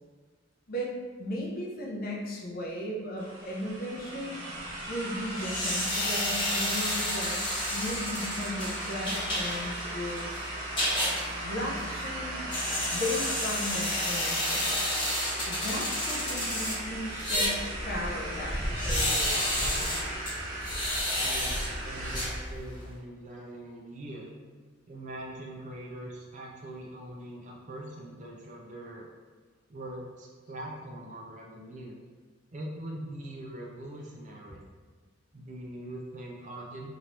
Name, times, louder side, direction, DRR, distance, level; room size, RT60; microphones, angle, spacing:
voice 1, 1.2-4.4 4.9-7.4 7.7-10.3 11.4-12.4 12.9-14.7 15.5-20.0, left 1 dB, 50° left, -3 dB, 0.6 m, -36 dB
sound 1, 3.2-22.5, right 1 dB, 80° right, 1.1 m, -38 dB
sound 2, 5.4-22.9, left 1 dB, 25° left, 1.0 m, -31 dB
voice 2, 21.2-24.3 24.9-29.1 29.7-32.0 32.5-34.6 35.3-36.9, right 1 dB, 40° right, -2 dB, 0.4 m, -42 dB
2.9 x 2.6 x 3.2 m, 1.5 s
head